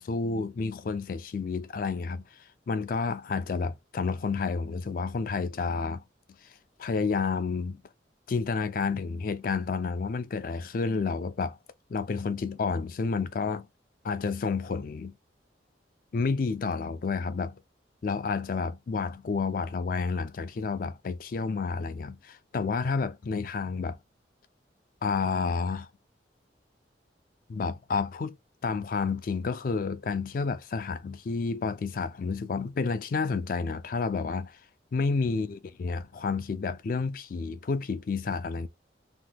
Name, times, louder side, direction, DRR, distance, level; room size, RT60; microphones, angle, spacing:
voice 1, 0.0-2.2 2.7-6.0 6.8-7.8 8.3-11.6 11.9-13.7 14.0-15.1 16.1-17.6 18.0-24.0 25.0-25.9 27.5-28.4 28.6-34.6 34.9-38.7, left 4 dB, 45° left, 0.3 m, -30 dB
2.9 x 2.2 x 3.3 m
head